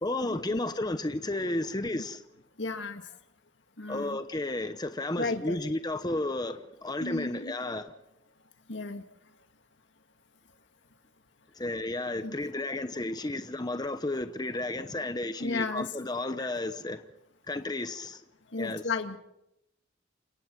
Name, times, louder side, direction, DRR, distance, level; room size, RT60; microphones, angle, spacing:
voice 1, 0.0-2.2 3.9-7.9 11.5-17.0 17.5-18.2 18.6-18.8, left 2 dB, 20° left, 0.9 m, -32 dB
voice 2, 2.6-3.1 3.8-4.2 5.2-5.6 7.0-7.5 8.7-9.0 12.2-12.3 15.4-15.9 16.4-16.5 18.5-19.2, left 3 dB, 75° left, 2.0 m, -34 dB
29.0 x 17.5 x 6.1 m
head